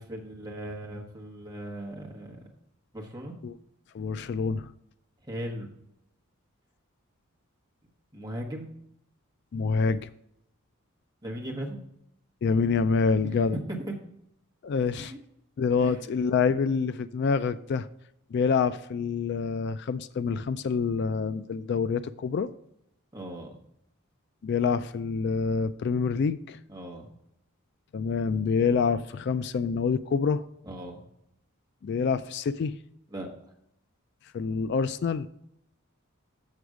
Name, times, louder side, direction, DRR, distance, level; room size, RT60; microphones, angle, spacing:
voice 1, 0.0-2.5 2.9-3.3 5.2-5.7 8.1-8.7 11.2-11.8 13.2-13.9 15.0-15.2 15.8-16.1 23.1-23.5 26.7-27.1 30.6-31.0 33.1-33.3, right 1 dB, 20° right, 0 dB, 1.3 m, -38 dB
voice 2, 3.9-4.7 9.5-10.1 12.4-13.6 14.6-15.1 15.6-17.9 18.3-22.5 24.4-26.6 27.9-30.4 31.8-32.8 34.3-35.3, left 5 dB, 50° left, 14 dB, 0.3 m, -26 dB
7.0 x 6.5 x 4.8 m, 0.78 s
head